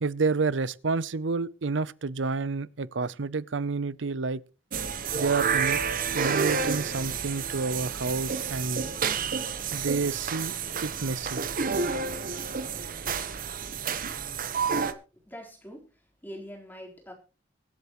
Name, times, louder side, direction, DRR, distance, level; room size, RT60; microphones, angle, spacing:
voice 1, 0.0-4.4 5.1-5.8 6.1-8.8 9.7-10.5 10.8-11.4, right 4 dB, 90° right, 0.7 m, -29 dB
sound 1, 4.7-14.9, right 6 dB, 50° right, 1.1 m, -30 dB
voice 2, 15.1-17.1, equal, 10° left, 4.1 m, -44 dB
24.5 x 8.2 x 3.1 m
head